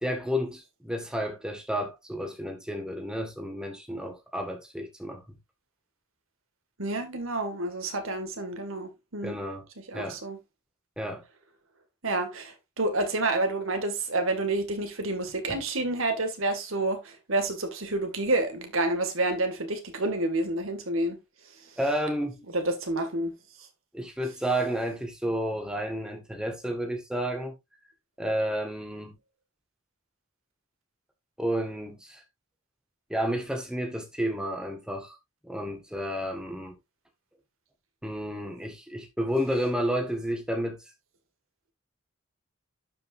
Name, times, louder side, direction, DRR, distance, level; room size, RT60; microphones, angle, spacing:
voice 1, 0.0-5.4 9.2-9.7 9.9-10.2 11.0-11.2 15.5-15.6 21.8-22.4 23.9-27.5 28.2-29.2 31.4-32.2 33.1-35.2 35.4-36.7 38.0-40.8, equal, 5° right, 1.6 m, -31 dB
voice 2, 6.8-9.4 9.8-10.4 12.0-21.2 22.5-23.3, right 2 dB, 75° right, 2.0 m, -29 dB
11.5 x 5.3 x 2.6 m
head